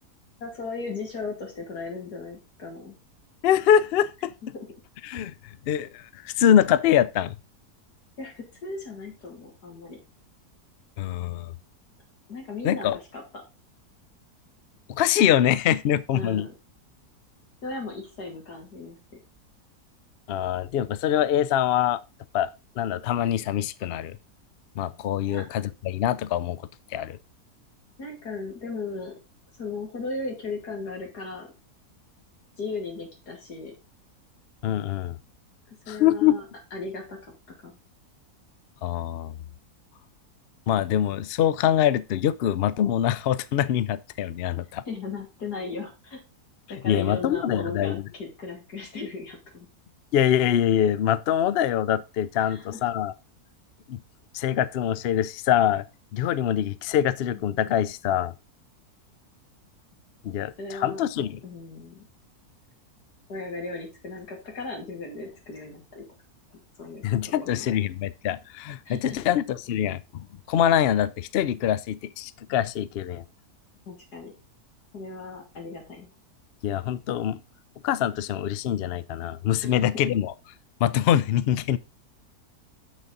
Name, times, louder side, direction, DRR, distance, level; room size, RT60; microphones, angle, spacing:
voice 1, 0.4-3.0 4.5-4.7 8.2-10.0 12.3-13.4 16.1-16.5 17.6-19.0 25.3-25.4 28.0-29.1 29.5-31.5 32.6-33.7 35.7-36.4 36.7-37.3 37.6-37.8 44.9-46.2 46.7-49.7 52.3-52.8 60.2-61.0 61.4-62.1 63.3-66.0 66.5-67.1 67.4-67.8 68.9-69.2 73.9-74.3 74.9-76.1 79.6-79.9, left 3 dB, 85° left, 3.0 m, -37 dB
voice 2, 3.4-4.3 5.0-5.3 5.7-7.4 11.0-11.5 12.6-13.0 14.9-16.5 20.3-22.0 22.3-22.5 22.8-24.2 24.8-27.2 34.6-35.2 35.9-36.4 38.8-39.4 40.7-44.8 46.8-48.0 50.1-53.1 53.9-54.0 54.3-55.8 56.1-58.3 60.2-61.4 67.0-73.2 76.6-77.4 77.8-80.3 80.8-81.8, left 10 dB, 70° left, 0.5 m, -24 dB
7.4 x 6.3 x 4.0 m
omnidirectional pair, 1.7 m